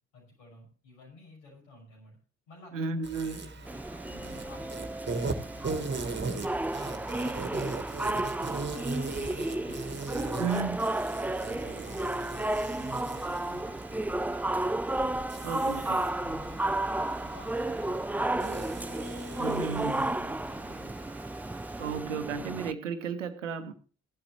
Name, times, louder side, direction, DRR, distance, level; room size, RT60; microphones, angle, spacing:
voice 1, 0.1-2.2 2.5-4.8 5.4-7.7 8.4-10.8 11.2-14.7 16.2-18.7 19.3-21.1, left 3 dB, 80° left, 6.0 m, -53 dB
voice 2, 2.7-3.4 10.4-10.8 15.4-16.1 19.4-20.0 21.8-23.7, right 5 dB, 85° right, 0.9 m, -33 dB
Insect, 3.0-22.0, right 3 dB, 30° right, 1.7 m, -39 dB
sound 1, 3.7-22.7, right 1 dB, 5° right, 0.5 m, -33 dB
15.5 x 11.5 x 3.0 m
figure-of-eight pair, 40°, 37 cm